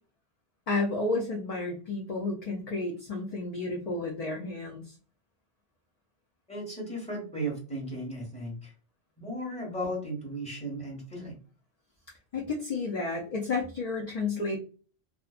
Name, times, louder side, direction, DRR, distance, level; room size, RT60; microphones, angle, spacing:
voice 1, 0.7-4.9 12.3-14.6, left 3 dB, 55° left, 0 dB, 0.4 m, -31 dB
voice 2, 6.5-8.7 9.2-11.3, right 1 dB, 5° left, -3 dB, 1.1 m, -35 dB
2.5 x 2.1 x 2.4 m, 0.37 s
omnidirectional pair, 1.1 m